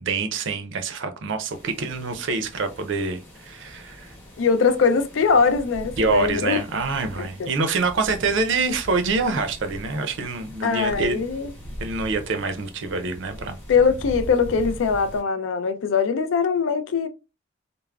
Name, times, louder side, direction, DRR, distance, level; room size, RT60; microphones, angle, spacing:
voice 1, 0.0-4.1 6.0-11.2 11.8-13.6, right 4 dB, 65° right, 0.5 m, -26 dB
sound 1, 1.5-15.2, equal, 10° left, 0.8 m, -41 dB
voice 2, 4.4-6.6 7.2-7.5 10.6-11.5 13.7-17.1, left 5 dB, 65° left, 0.4 m, -21 dB
3.4 x 2.0 x 2.2 m
head